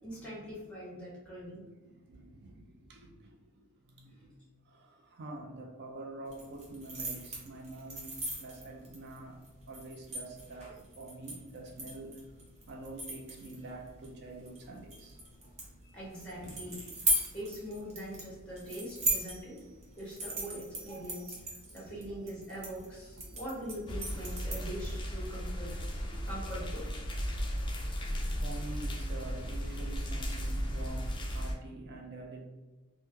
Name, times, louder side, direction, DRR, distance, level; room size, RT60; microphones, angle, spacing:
voice 1, 0.0-1.7 15.9-16.8 17.3-19.6 20.0-21.4 21.7-25.7 26.2-26.9, equal, 5° left, -5 dB, 1.1 m, -42 dB
voice 2, 1.5-4.3 4.7-9.4 9.7-10.7 11.0-12.2 12.7-15.2 21.6-21.9 23.2-23.3 26.0-26.3 28.0-32.5, right 2 dB, 50° right, 1 dB, 0.4 m, -46 dB
sound 1, 6.3-24.9, right 1 dB, 30° right, 0.8 m, -39 dB
sound 2, 23.9-31.5, equal, 20° left, 0.3 m, -35 dB
2.8 x 2.1 x 3.6 m, 1.2 s
head